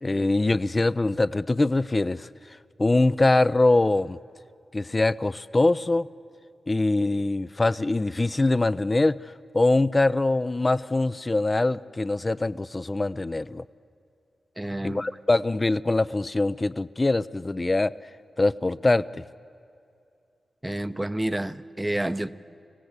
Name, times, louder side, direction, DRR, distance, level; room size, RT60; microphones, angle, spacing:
voice 1, 0.0-2.3 2.8-4.2 4.7-6.1 6.7-9.2 9.5-13.6 14.8-17.9 18.4-19.2, left 2 dB, 30° left, 16 dB, 0.5 m, -23 dB
voice 2, 14.6-15.0 20.6-22.3, right 1 dB, 15° right, 13 dB, 0.7 m, -29 dB
25.0 x 17.0 x 8.0 m, 2.5 s
cardioid pair, 60°, 0 cm